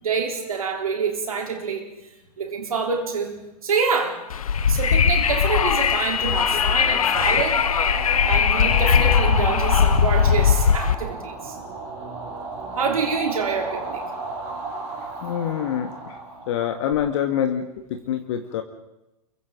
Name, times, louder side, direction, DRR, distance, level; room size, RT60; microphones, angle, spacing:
voice 1, 0.0-1.9 2.4-4.2 4.7-7.7 8.3-11.6 12.8-14.1, right 5 dB, 65° right, 3 dB, 3.6 m, -26 dB
Wind, 4.3-11.0, left 7 dB, 65° left, 1.1 m, -19 dB
sound 1, 5.8-16.9, right 2 dB, 35° right, 5.0 m, -33 dB
voice 2, 14.9-16.2 16.5-18.6, left 9 dB, 50° left, 5 dB, 1.8 m, -26 dB
29.0 x 23.5 x 3.8 m, 0.94 s
figure-of-eight pair, 100°, 20 cm